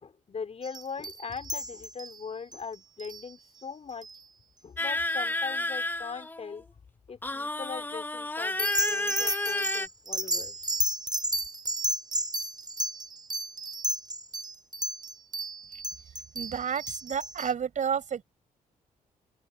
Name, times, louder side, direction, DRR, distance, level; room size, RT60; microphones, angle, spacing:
voice 1, 0.0-4.1 4.6-6.7 7.1-10.6, left 5 dB, 45° left, 4.5 m, -40 dB
sound 1, 0.6-2.2 2.5-2.6 3.0-3.2 4.0-4.2 8.6-17.5, equal, 30° right, 4.2 m, -32 dB
sound 2, 4.8-6.6 7.2-9.9, left 2 dB, 15° left, 1.4 m, -31 dB
voice 2, 16.3-18.2, right 7 dB, 60° right, 5.1 m, -30 dB
open air
cardioid pair, 75°, 15 cm